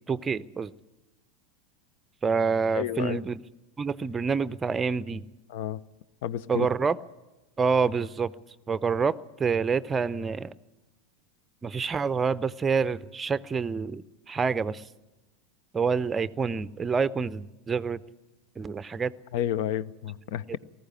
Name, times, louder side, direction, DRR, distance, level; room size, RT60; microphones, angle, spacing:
voice 1, 0.1-0.7 2.2-3.4 3.8-5.3 6.5-7.0 7.6-8.3 8.7-10.5 11.6-14.8 15.7-18.0 18.6-19.1, right 5 dB, 20° right, 0.6 m, -27 dB
voice 2, 2.8-3.2 5.5-5.8 6.2-6.7 19.3-20.6, left 11 dB, 55° left, 0.6 m, -30 dB
19.0 x 15.0 x 9.6 m
figure-of-eight pair, 85°, 0 cm